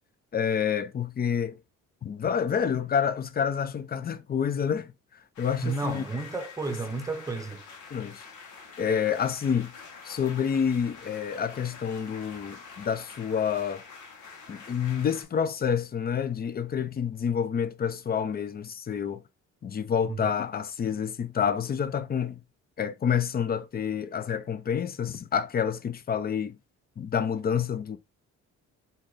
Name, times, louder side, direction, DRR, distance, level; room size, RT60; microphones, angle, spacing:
voice 1, 0.3-1.6 2.0-4.9 5.4-6.0 7.9-8.2 8.8-9.7 10.0-13.8 14.5-19.2 19.6-22.4 22.8-26.6 27.0-28.0, left 7 dB, 30° left, 0.5 m, -28 dB
sound 1, 5.3-15.2, left 5 dB, 75° left, 1.3 m, -46 dB
voice 2, 5.6-7.6 20.1-20.3, right 3 dB, 10° right, 0.8 m, -32 dB
3.7 x 2.8 x 3.1 m
cardioid pair, 90°, 30 cm